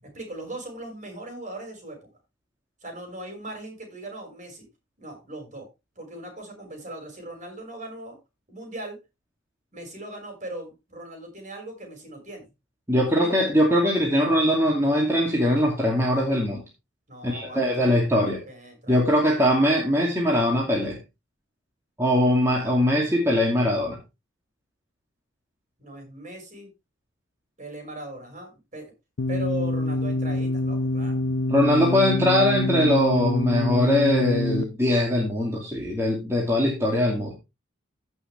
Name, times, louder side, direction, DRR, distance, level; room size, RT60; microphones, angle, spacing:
voice 1, 0.0-2.1 2.8-4.7 5.0-5.7 6.0-8.2 8.5-9.0 9.7-12.5 13.2-13.3 17.1-19.4 25.8-26.7 27.6-28.9 29.3-31.2 31.9-32.1, right 1 dB, 35° right, 3 dB, 5.6 m, -39 dB
voice 2, 12.9-16.6 17.2-18.4 18.9-21.0 22.0-24.0 31.5-37.3, left 1 dB, 15° right, -3 dB, 2.5 m, -21 dB
sound 1, 29.2-34.6, left 1 dB, 70° left, 0.6 m, -26 dB
16.0 x 6.3 x 3.4 m, 0.25 s
head